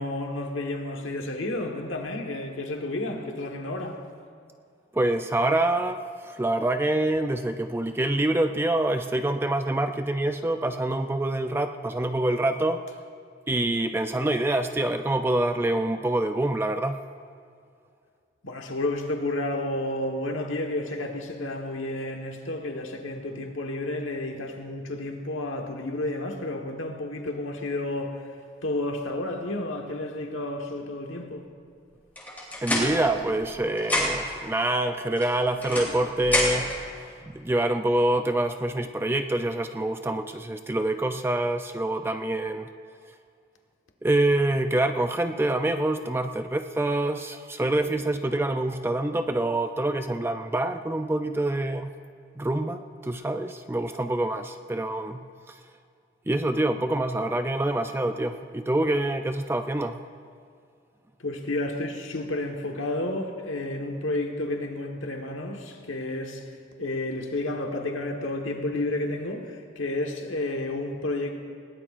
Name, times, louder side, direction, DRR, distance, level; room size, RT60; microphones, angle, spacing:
voice 1, 0.0-4.0 18.4-28.2 28.6-31.4 61.2-66.4 66.8-71.4, left 2 dB, 90° left, 2 dB, 1.3 m, -31 dB
voice 2, 4.9-12.8 13.5-17.0 32.6-42.7 44.0-51.9 52.4-55.6 56.3-60.0, right 1 dB, 10° right, 7 dB, 0.4 m, -26 dB
sound 1, 32.2-33.5 33.8-34.4 35.2-36.8, left 1 dB, 10° left, 3.2 m, -28 dB
20.5 x 18.0 x 2.5 m, 2.2 s
head